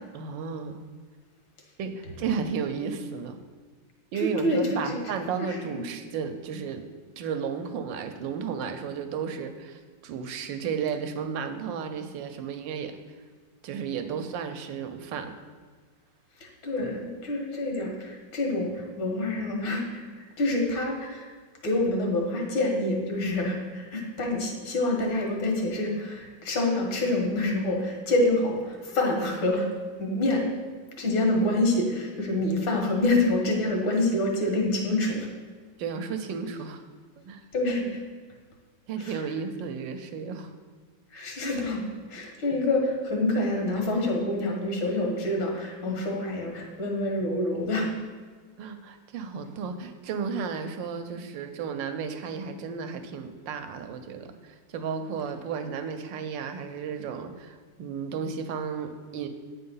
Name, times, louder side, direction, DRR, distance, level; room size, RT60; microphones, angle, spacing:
voice 1, 0.1-0.8 1.8-3.4 4.1-6.8 7.2-12.9 13.6-15.4 35.8-36.8 37.2-37.4 38.9-40.5 42.5-42.6 45.9-46.0 48.6-59.3, right 6 dB, 75° right, 8 dB, 1.3 m, -33 dB
voice 2, 4.2-4.6 5.4-5.8 16.4-20.0 20.4-21.3 21.6-29.7 30.0-30.4 31.0-35.3 37.5-38.0 39.0-39.1 41.1-41.8 42.1-47.9, left 2 dB, 80° left, 1 dB, 2.1 m, -27 dB
8.6 x 4.1 x 5.5 m, 1.5 s
omnidirectional pair, 2.1 m